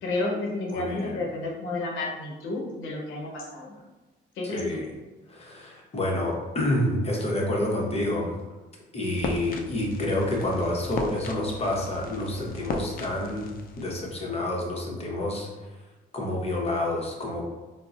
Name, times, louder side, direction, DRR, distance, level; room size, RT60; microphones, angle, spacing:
voice 1, 0.0-3.7 4.4-4.8, left 2 dB, 85° left, -1 dB, 0.7 m, -31 dB
voice 2, 0.7-1.2 4.4-4.9 5.3-8.3 8.9-15.5 16.1-17.4, left 1 dB, 30° left, -1 dB, 0.8 m, -28 dB
sound 1, 9.2-14.2, left 3 dB, 50° left, 0.4 m, -37 dB
3.7 x 2.0 x 2.4 m, 1.2 s
cardioid pair, 90°, 20 cm